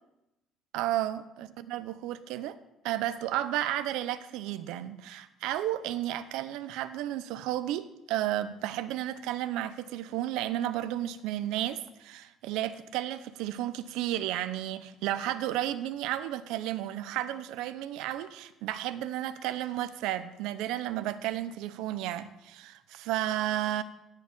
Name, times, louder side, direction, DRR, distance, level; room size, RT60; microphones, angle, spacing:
voice 1, 0.7-2.6 2.8-23.8, right 13 dB, 80° right, 0.7 m, -33 dB
14.0 x 4.7 x 8.6 m
cardioid pair, 155°, 0 cm